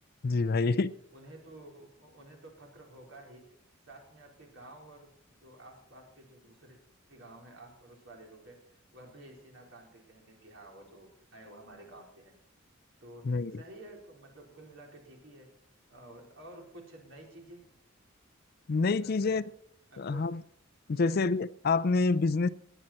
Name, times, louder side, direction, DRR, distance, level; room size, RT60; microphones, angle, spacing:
voice 1, 0.2-0.9 13.2-13.5 18.7-19.4 20.0-20.4 20.9-22.5, left 3 dB, 45° left, 0.4 m, -27 dB
voice 2, 1.1-3.5 3.9-6.8 7.1-12.3 13.0-15.5 15.9-17.7 18.9-19.4 19.9-20.4 20.9-21.2, right 1 dB, 65° right, 4.3 m, -52 dB
20.0 x 9.1 x 4.3 m
head